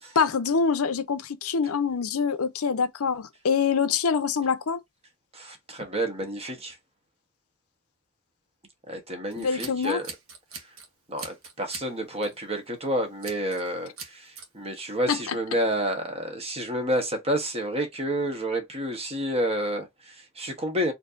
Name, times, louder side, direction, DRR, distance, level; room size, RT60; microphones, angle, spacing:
voice 1, 0.2-4.8 9.4-10.0 15.1-15.4, left 5 dB, 90° left, 0.6 m, -25 dB
voice 2, 5.3-6.8 8.9-10.1 11.1-20.9, right 1 dB, 30° right, 1.2 m, -29 dB
Scissors, 9.3-10.9 11.2-11.9 12.2-12.4 13.2-13.7 14.0-14.5, right 5 dB, 80° right, 1.3 m, -41 dB
4.3 x 2.8 x 2.6 m
head